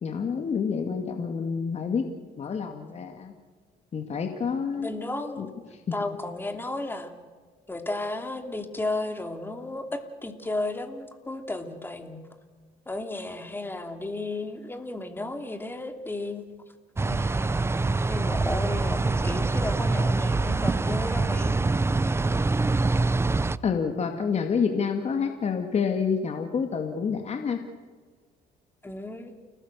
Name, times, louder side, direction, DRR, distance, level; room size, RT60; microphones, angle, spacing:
voice 1, 0.0-2.1 2.4-3.3 3.9-4.9 5.4-5.5 23.6-27.6, left 6 dB, 40° left, 5 dB, 2.2 m, -28 dB
voice 2, 4.7-5.4 5.9-7.1 7.7-12.3 12.9-16.4 17.0-17.6 18.1-21.6 28.8-29.3, left 2 dB, 10° left, 6 dB, 3.0 m, -33 dB
sound 1, 17.0-23.6, right 3 dB, 15° right, 0.6 m, -25 dB
29.5 x 18.5 x 6.8 m, 1.5 s
cardioid pair, 110°, 17 cm